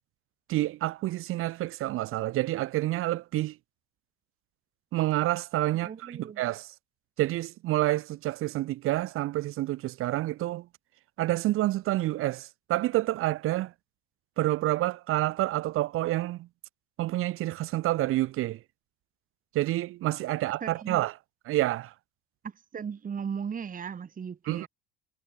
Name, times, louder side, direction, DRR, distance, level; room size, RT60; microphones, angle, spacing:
voice 1, 0.5-3.6 4.9-6.7 7.2-10.7 11.2-13.7 14.4-16.5 17.0-18.6 19.5-21.1 21.5-21.9 24.5-24.7, right 16 dB, 40° right, 0.5 m, -28 dB
voice 2, 5.7-6.4 20.6-21.0 22.4-24.7, right 7 dB, 25° right, 1.8 m, -37 dB
cardioid pair, 120°, 33 cm